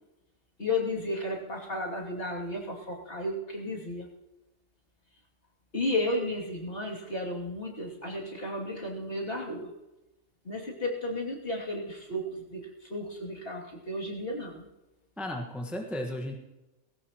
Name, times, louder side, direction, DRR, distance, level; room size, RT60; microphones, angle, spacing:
voice 1, 0.6-4.1 5.7-9.7 10.4-14.7, left 1 dB, 45° left, -3 dB, 2.9 m, -33 dB
voice 2, 15.2-16.3, left 1 dB, ahead, 1 dB, 1.4 m, -34 dB
19.0 x 17.0 x 3.0 m, 1.0 s
omnidirectional pair, 1.4 m